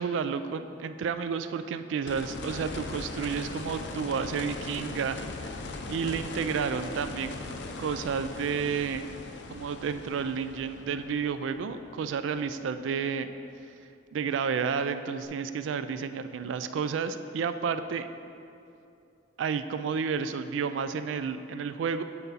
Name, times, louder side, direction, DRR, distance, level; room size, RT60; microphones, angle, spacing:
voice 1, 0.0-5.5 5.9-7.4 7.8-9.0 9.5-13.3 14.1-18.1 19.4-22.0, right 6 dB, 80° right, 11 dB, 0.3 m, -31 dB
sound 1, 2.1-13.0 15.2-15.3, left 3 dB, 65° left, 0.5 m, -40 dB
8.9 x 4.0 x 4.0 m, 2.7 s
head